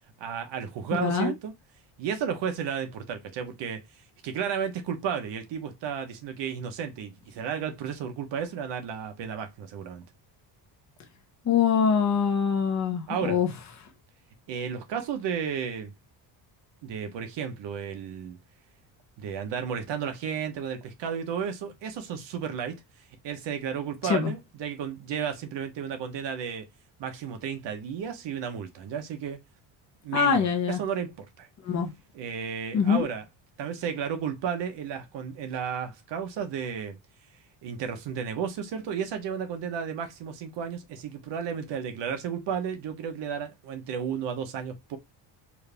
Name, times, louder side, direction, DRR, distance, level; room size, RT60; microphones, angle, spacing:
voice 1, 0.2-1.5 2.0-3.8 4.2-10.0 13.1-13.4 14.5-15.9 16.8-18.4 19.2-22.8 23.2-26.6 27.0-29.4 30.0-31.5 32.1-33.2 33.6-37.0 37.6-45.0, right 7 dB, 65° right, 1.1 m, -33 dB
voice 2, 0.9-1.3 11.4-13.5 24.0-24.3 30.1-30.8 31.6-31.9 32.7-33.1, left 6 dB, 35° left, 1.0 m, -24 dB
4.6 x 2.8 x 3.4 m
cardioid pair, 150°, 47 cm